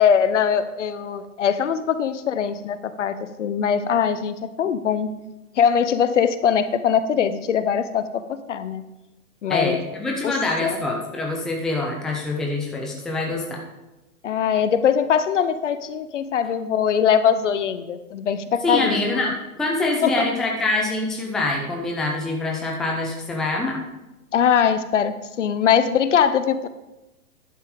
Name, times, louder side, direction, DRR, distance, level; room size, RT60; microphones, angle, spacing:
voice 1, 0.0-5.1 5.6-8.8 9.4-9.8 10.2-10.8 14.2-19.2 20.0-20.3 24.3-26.7, left 7 dB, 55° left, 12 dB, 0.8 m, -21 dB
voice 2, 9.5-13.6 18.6-23.8, left 2 dB, ahead, 0 dB, 0.6 m, -25 dB
11.0 x 6.7 x 5.1 m, 1.0 s
figure-of-eight pair, 120°, 44 cm